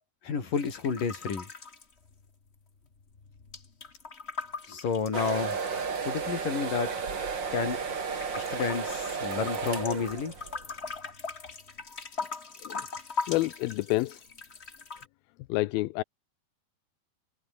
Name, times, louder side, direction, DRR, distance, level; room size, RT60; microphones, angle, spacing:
voice 1, 0.2-1.5 4.7-5.6 6.0-6.9 7.5-7.8 8.4-10.3, left 5 dB, 65° left, 6.2 m, -30 dB
sound 1, 0.5-2.6 2.8-6.2 6.8-7.8 8.2-15.1, left 4 dB, 30° left, 1.1 m, -40 dB
sound 2, 5.1-10.6, right 5 dB, 35° right, 2.7 m, -33 dB
voice 2, 13.3-14.2 15.5-16.0, left 19 dB, 85° left, 2.5 m, -28 dB
omnidirectional pair, 4.2 m